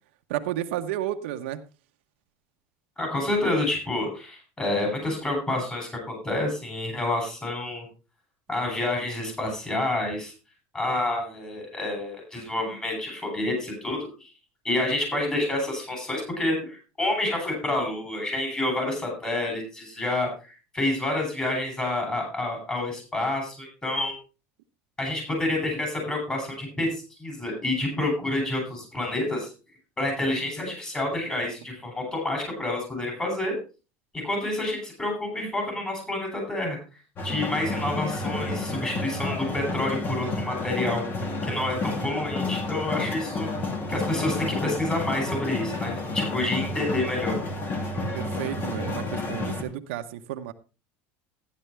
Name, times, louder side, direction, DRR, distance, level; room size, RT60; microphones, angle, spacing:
voice 1, 0.3-1.6 48.1-50.5, right 12 dB, 90° right, 6 dB, 1.0 m, -32 dB
voice 2, 3.0-7.9 8.5-10.3 10.7-14.3 14.6-24.1 25.0-29.5 30.0-33.5 34.1-36.8 37.2-41.0 41.4-43.5 43.9-47.4, left 2 dB, 15° left, 1 dB, 8.0 m, -28 dB
sound 1, 37.2-49.6, left 2 dB, 35° left, 2.5 m, -30 dB
14.0 x 10.5 x 3.4 m, 0.32 s
supercardioid pair, 135°, 6 cm